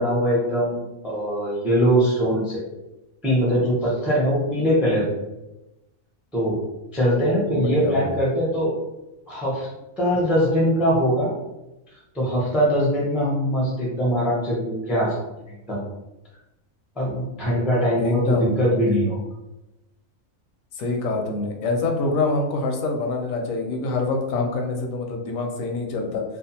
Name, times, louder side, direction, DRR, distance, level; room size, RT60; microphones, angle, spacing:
voice 1, 0.0-2.6 3.2-5.1 6.3-6.6 6.9-8.7 9.3-9.7 10.0-11.3 12.1-15.2 15.5-15.8 17.0-19.2, equal, ahead, -4 dB, 0.3 m, -22 dB
voice 2, 7.5-8.2 18.0-19.0 20.8-26.2, left 3 dB, 85° left, 2 dB, 1.0 m, -26 dB
2.5 x 2.2 x 2.7 m, 0.98 s
omnidirectional pair, 1.4 m